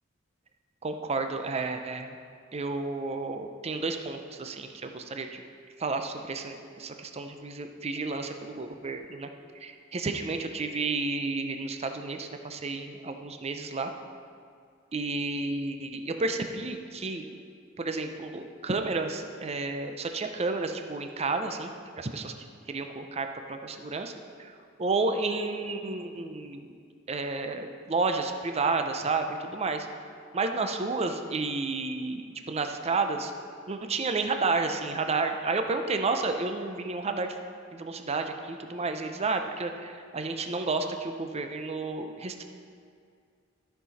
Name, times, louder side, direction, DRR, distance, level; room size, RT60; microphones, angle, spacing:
voice 1, 0.8-2.2 2.5-5.4 5.8-9.3 9.5-13.9 14.9-17.4 17.8-22.3 22.7-24.1 24.4-26.7 27.1-29.9 30.3-33.3 33.7-37.4 37.7-42.4, right 3 dB, 30° right, 6 dB, 0.6 m, -31 dB
13.5 x 5.8 x 4.1 m, 2.2 s
head